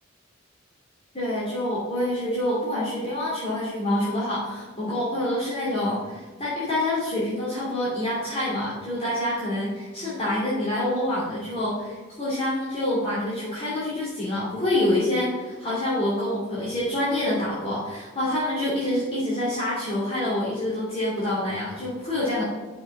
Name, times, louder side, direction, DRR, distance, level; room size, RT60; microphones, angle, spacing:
voice 1, 1.1-22.4, left 1 dB, 30° left, -9 dB, 2.8 m, -26 dB
7.0 x 5.7 x 7.3 m, 1.4 s
head